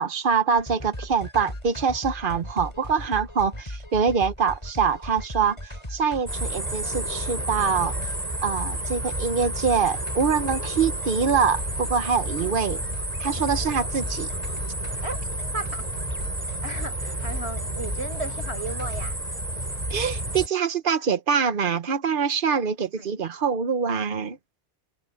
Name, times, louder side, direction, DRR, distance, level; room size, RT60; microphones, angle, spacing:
voice 1, 0.0-8.1 8.4-12.8 13.2-14.3 19.9-24.4, right 6 dB, 55° right, 1.2 m, -24 dB
sound 1, 0.6-19.1, left 1 dB, 30° left, 5.8 m, -37 dB
sound 2, 6.3-20.5, right 1 dB, 40° right, 5.3 m, -31 dB
voice 2, 12.3-12.6 15.0-15.2 15.5-15.9 16.1-16.2 16.6-19.2 23.0-23.1, right 2 dB, 90° right, 5.7 m, -35 dB
omnidirectional pair, 1.1 m